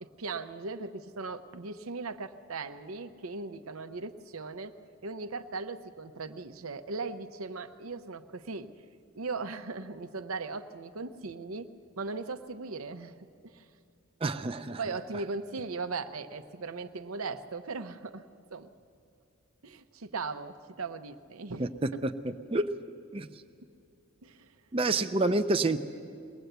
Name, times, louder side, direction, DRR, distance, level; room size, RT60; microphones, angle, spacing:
voice 1, 0.0-4.7 5.0-8.7 9.2-11.7 12.0-13.1 13.4-13.6 14.8-18.2 18.5-18.7 19.6-21.7 24.2-24.6, right 4 dB, 90° right, 9 dB, 0.8 m, -38 dB
voice 2, 14.2-14.8 21.6-22.7 23.1-23.3 24.7-25.8, right 2 dB, 25° right, 7 dB, 0.5 m, -28 dB
22.0 x 18.5 x 8.0 m, 2.4 s
head